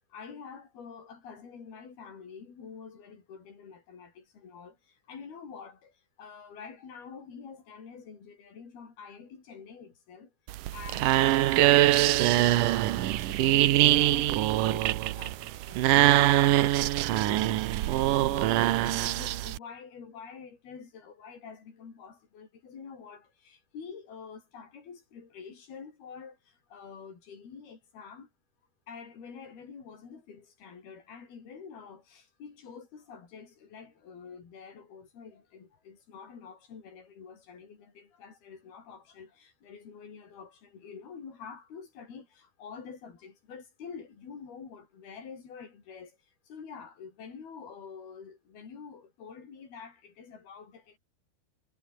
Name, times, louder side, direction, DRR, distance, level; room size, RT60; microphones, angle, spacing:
voice 1, 0.1-10.3 10.7-28.3 28.9-51.0, left 6 dB, 65° left, 7.0 m, -47 dB
sound 1, 10.5-19.6, right 15 dB, 70° right, 2.1 m, -23 dB
omnidirectional pair, 4.7 m